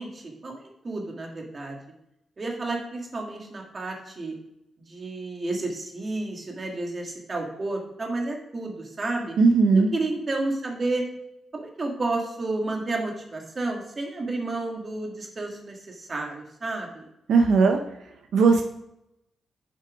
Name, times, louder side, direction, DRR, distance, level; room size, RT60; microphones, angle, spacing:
voice 1, 0.0-1.8 2.4-4.3 4.9-9.4 9.7-11.0 11.5-17.1, right 2 dB, 35° right, 1 dB, 1.8 m, -31 dB
voice 2, 9.4-9.9 17.3-17.8 18.3-18.6, right 4 dB, 80° right, 4 dB, 0.7 m, -18 dB
7.4 x 5.7 x 5.0 m, 0.83 s
cardioid pair, 115°, 0 cm